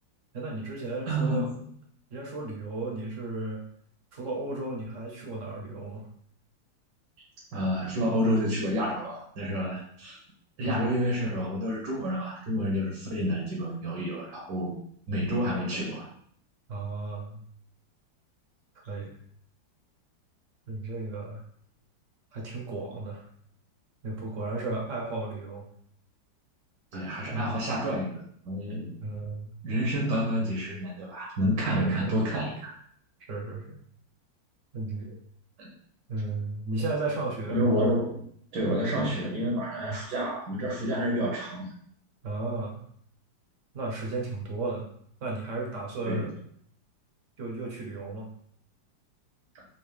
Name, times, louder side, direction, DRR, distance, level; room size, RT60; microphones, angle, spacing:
voice 1, 0.3-1.5 2.1-3.6 4.1-6.1 10.6-10.9 16.7-17.4 18.9-19.2 20.7-21.4 22.3-23.3 24.0-25.7 27.3-27.6 29.0-29.5 31.6-32.2 33.3-33.8 34.7-35.2 36.1-37.8 39.8-40.0 42.2-42.8 43.7-44.9 45.2-46.3 47.4-48.3, right 2 dB, 50° right, -1 dB, 1.1 m, -34 dB
voice 2, 1.1-1.6 7.5-10.2 10.6-14.8 15.1-16.1 26.9-28.2 28.4-28.9 29.6-32.7 35.6-35.7 37.5-38.2 38.5-41.7 46.0-46.3, equal, 65° right, -3 dB, 1.6 m, -29 dB
4.5 x 2.8 x 3.3 m, 0.63 s
omnidirectional pair, 2.1 m